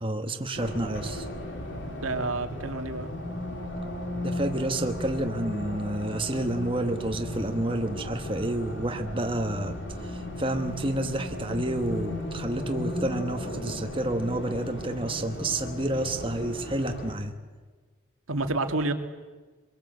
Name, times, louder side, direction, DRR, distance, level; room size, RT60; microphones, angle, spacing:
voice 1, 0.0-1.2 4.2-9.8 10.0-17.3, right 1 dB, 25° right, 5 dB, 1.3 m, -29 dB
Race car auto racing, 0.5-17.1, left 1 dB, 55° left, 3.4 m, -36 dB
voice 2, 2.0-3.1 18.3-18.9, right 2 dB, 80° right, 6 dB, 2.1 m, -29 dB
25.0 x 22.5 x 8.1 m, 1.4 s
head